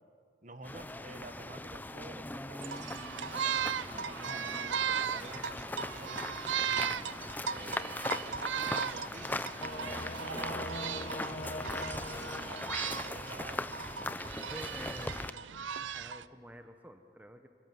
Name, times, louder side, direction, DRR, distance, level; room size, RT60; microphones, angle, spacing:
voice 1, 0.4-2.9 3.4-5.6 6.0-10.3 11.1-13.7 14.4-14.9, right 2 dB, 40° right, 9 dB, 1.6 m, -50 dB
sound 1, 0.6-15.3, left 2 dB, 10° left, 0.6 m, -40 dB
sound 2, 2.6-16.2, right 8 dB, 85° right, 0.6 m, -37 dB
Singing / Musical instrument, 9.6-13.7, left 1 dB, 40° left, 1.8 m, -42 dB
voice 2, 14.5-15.5 15.9-17.5, equal, 10° right, 6 dB, 1.0 m, -48 dB
27.5 x 25.5 x 7.8 m, 2.2 s
head